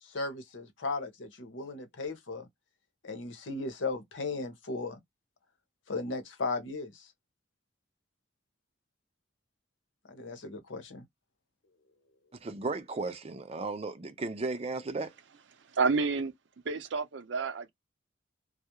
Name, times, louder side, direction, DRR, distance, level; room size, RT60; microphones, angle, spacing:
voice 1, 0.0-2.5 3.0-5.0 5.9-7.1 10.1-11.1, left 3 dB, 90° left, 0.8 m, -36 dB
voice 2, 12.4-15.1, right 3 dB, 35° right, 0.5 m, -35 dB
voice 3, 15.7-16.3 16.6-17.7, right 4 dB, 75° right, 0.6 m, -29 dB
2.4 x 2.0 x 2.9 m
head